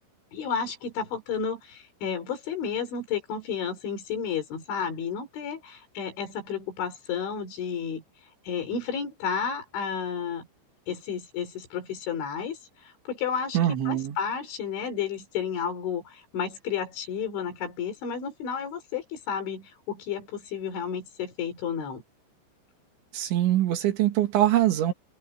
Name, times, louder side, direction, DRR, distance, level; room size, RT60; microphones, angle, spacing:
voice 1, 0.3-8.0 8.4-10.5 10.9-13.6 13.9-22.0, left 7 dB, 70° left, 6.4 m, -32 dB
voice 2, 13.5-14.2 23.1-24.9, right 13 dB, 70° right, 4.4 m, -23 dB
open air
omnidirectional pair, 5.6 m